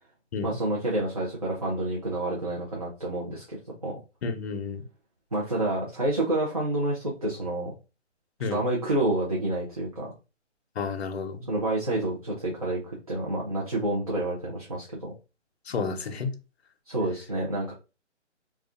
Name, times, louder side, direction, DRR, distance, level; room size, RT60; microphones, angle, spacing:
voice 1, 0.4-3.6 3.8-4.0 5.3-7.7 8.5-10.1 11.5-15.1 16.9-17.7, right 1 dB, 30° right, 0.5 m, -28 dB
voice 2, 4.2-4.8 8.4-8.6 10.8-11.4 15.7-16.3, left 5 dB, 60° left, 0.6 m, -31 dB
2.3 x 2.2 x 2.4 m
figure-of-eight pair, 160°, 36 cm